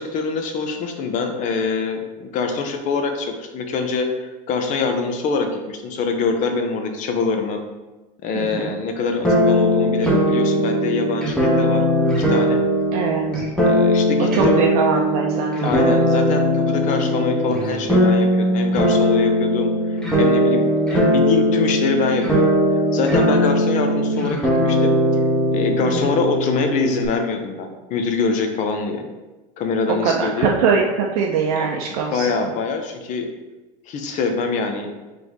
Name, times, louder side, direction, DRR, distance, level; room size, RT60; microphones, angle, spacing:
voice 1, 0.0-7.6 8.2-11.9 12.3-12.6 13.6-14.6 15.6-22.4 22.9-25.0 25.5-29.0 29.6-30.5 31.6-33.3 33.9-34.9, left 4 dB, 40° left, 5 dB, 0.7 m, -24 dB
voice 2, 8.3-8.8 12.9-13.5 14.3-15.5 25.8-26.1 30.0-32.5, right 5 dB, 80° right, -1 dB, 0.6 m, -22 dB
sound 1, 9.2-27.1, equal, 5° left, 1.1 m, -19 dB
4.0 x 3.3 x 3.5 m, 1.2 s
supercardioid pair, 130°, 19 cm